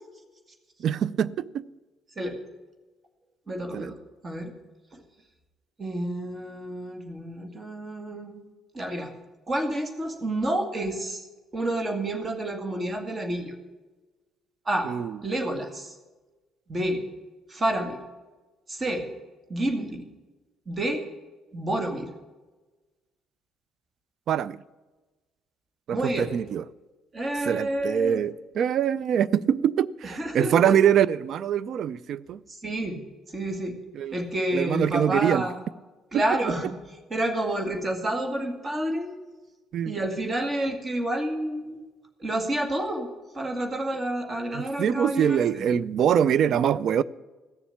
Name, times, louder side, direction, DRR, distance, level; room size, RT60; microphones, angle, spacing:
voice 1, 0.8-1.7 3.7-3.9 14.9-15.2 24.3-24.6 25.9-26.6 27.4-32.4 33.9-34.2 34.5-35.5 36.1-36.2 39.7-39.9 44.5-47.0, right 9 dB, 55° right, 0.4 m, -24 dB
voice 2, 3.5-4.0 4.2-4.6 4.9-5.0 5.8-8.4 8.7-9.2 9.5-11.3 11.5-13.6 14.7-14.9 15.2-16.0 16.7-17.1 17.5-18.1 18.7-19.1 19.5-20.1 20.7-21.1 21.5-22.1 25.9-26.3 27.1-28.2 30.0-30.8 32.5-33.8 34.1-35.6 36.1-36.8 37.1-39.2 39.9-41.8 42.2-43.1 43.3-45.7, right 1 dB, 30° right, 2.2 m, -29 dB
15.5 x 7.0 x 8.7 m
hypercardioid pair, 50°, 0 cm